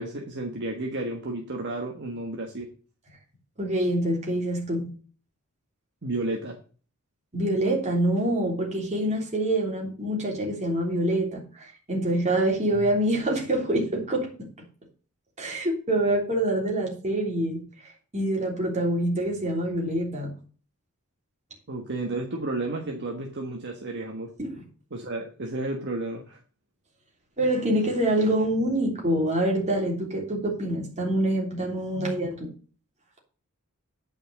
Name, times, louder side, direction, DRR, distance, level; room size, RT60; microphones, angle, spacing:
voice 1, 0.0-2.7 6.0-6.6 21.7-24.3 24.9-26.4 31.9-32.2, right 2 dB, 55° right, 1 dB, 1.4 m, -32 dB
voice 2, 3.6-4.8 7.3-14.5 15.4-20.3 24.4-24.6 27.4-32.5, right 1 dB, 35° right, 0 dB, 3.3 m, -26 dB
8.9 x 5.4 x 6.8 m, 0.39 s
head